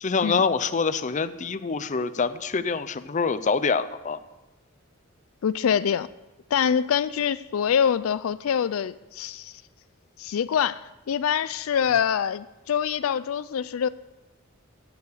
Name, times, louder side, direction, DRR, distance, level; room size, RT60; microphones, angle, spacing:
voice 1, 0.0-4.2, left 5 dB, 35° left, 12 dB, 0.6 m, -25 dB
voice 2, 5.4-6.1 6.5-9.5 10.2-13.9, left 8 dB, 80° left, 16 dB, 0.4 m, -25 dB
17.0 x 7.2 x 6.7 m, 1.0 s
head